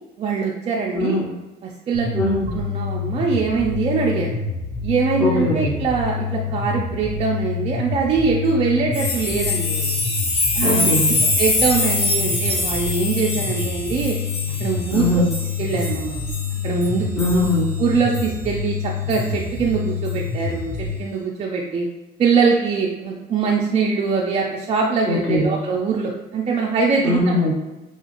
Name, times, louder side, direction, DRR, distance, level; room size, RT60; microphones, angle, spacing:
voice 1, 0.2-1.2 1.6-2.1 2.5-4.4 4.8-10.0 10.5-10.9 11.4-14.2 14.6-15.0 15.6-16.3 16.6-17.1 17.8-21.9 22.2-27.5, right 5 dB, 40° right, -1 dB, 0.4 m, -22 dB
voice 2, 0.9-1.3 2.1-2.5 5.2-5.9 10.6-11.2 14.9-15.3 17.2-17.7 25.0-25.6 27.0-27.5, left 1 dB, 15° left, -7 dB, 0.6 m, -21 dB
sound 1, 1.9-21.0, left 5 dB, 85° left, 0.6 m, -27 dB
sound 2, 8.9-17.6 18.1-18.3 19.1-19.2, left 2 dB, 35° left, 1.1 m, -24 dB
3.0 x 2.4 x 2.8 m, 1.1 s
cardioid pair, 110°, 17 cm